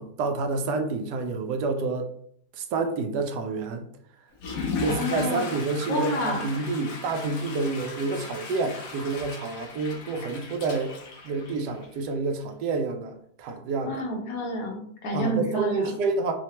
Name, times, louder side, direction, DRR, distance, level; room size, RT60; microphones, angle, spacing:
voice 1, 0.0-2.1 2.6-3.9 4.8-10.9 11.2-14.0 15.1-16.3, right 3 dB, 85° right, 5 dB, 1.2 m, -28 dB
Water / Toilet flush, 4.3-12.1, left 4 dB, 80° left, 1.2 m, -37 dB
voice 2, 4.8-5.4 5.9-6.4 13.8-15.9, equal, 65° left, 1 dB, 1.2 m, -29 dB
4.7 x 2.1 x 2.9 m, 0.65 s
omnidirectional pair, 1.7 m